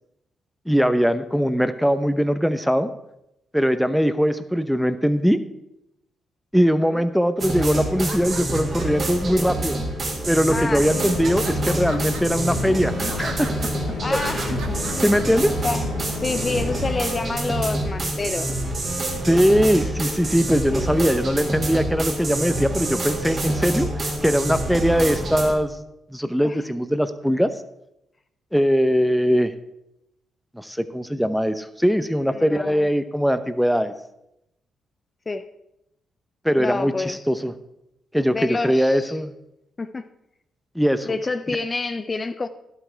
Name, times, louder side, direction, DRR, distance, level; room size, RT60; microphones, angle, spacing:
voice 1, 0.7-2.9 3.5-5.4 6.5-9.8 10.3-13.5 14.1-14.2 15.0-15.5 19.2-27.5 28.5-29.5 30.5-33.9 36.4-37.5 38.1-39.3 40.7-41.2, equal, ahead, 11 dB, 0.8 m, -21 dB
sound 1, 7.4-25.5, right 1 dB, 50° right, 2.7 m, -27 dB
sound 2, 7.9-9.3 10.0-10.6 11.0-15.4, right 5 dB, 80° right, 1.3 m, -39 dB
voice 2, 10.5-11.0 14.0-14.9 15.6-15.8 16.2-18.5 20.7-21.2 26.4-26.6 32.3-32.9 35.3-35.4 36.6-37.2 38.3-39.2 39.8-40.1 41.0-42.5, left 3 dB, 35° left, 10 dB, 0.6 m, -28 dB
sound 3, 10.9-16.9, left 6 dB, 75° left, 0.9 m, -33 dB
11.5 x 8.2 x 4.6 m, 0.84 s
supercardioid pair, 50°, 0 cm